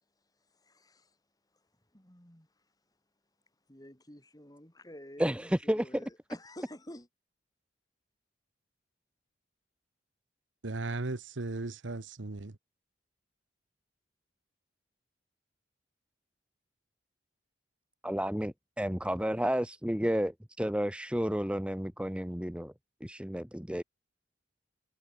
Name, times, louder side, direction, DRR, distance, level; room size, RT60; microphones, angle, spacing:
voice 1, 0.7-1.1 1.9-2.5 3.7-7.1, left 1 dB, 20° left, 3.8 m, -50 dB
voice 2, 5.2-6.0 18.0-22.7 23.0-23.8, equal, 5° right, 1.2 m, -31 dB
voice 3, 10.6-12.6, right 2 dB, 85° right, 1.1 m, -36 dB
head